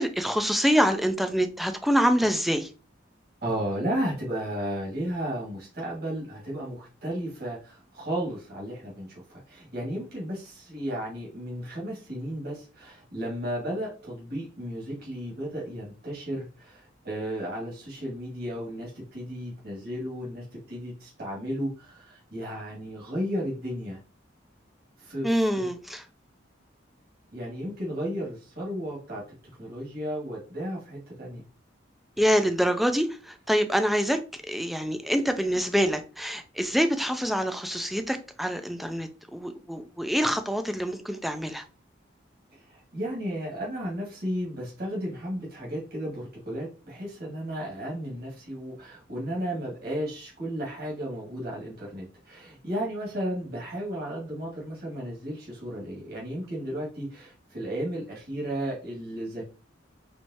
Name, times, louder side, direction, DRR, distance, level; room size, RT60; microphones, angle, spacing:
voice 1, 0.0-2.7 25.2-26.0 32.2-34.2 34.5-41.6, equal, ahead, 0.4 m, -25 dB
voice 2, 3.4-24.0 25.0-25.3 25.5-25.7 27.3-29.2 29.6-31.4 42.5-59.4, equal, 55° right, 1.8 m, -34 dB
4.6 x 3.2 x 2.8 m
head